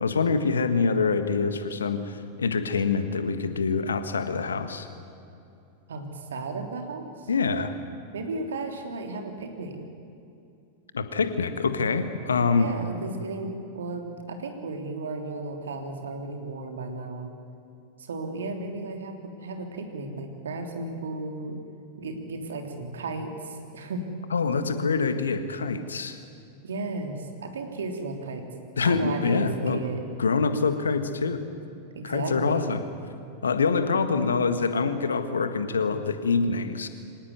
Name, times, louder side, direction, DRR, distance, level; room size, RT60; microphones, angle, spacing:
voice 1, 0.0-4.9 7.3-7.7 10.9-12.7 24.3-26.2 28.8-29.8 30.2-31.4 32.0-32.8 33.4-36.9, left 4 dB, 70° left, 10 dB, 1.7 m, -25 dB
voice 2, 5.9-7.3 8.1-9.8 12.5-17.3 18.0-21.6 22.0-24.0 26.6-28.4 28.8-30.0 31.9-32.8, right 3 dB, 65° right, 4 dB, 3.3 m, -34 dB
25.0 x 18.5 x 9.5 m, 2.7 s
figure-of-eight pair, 90°, 0 cm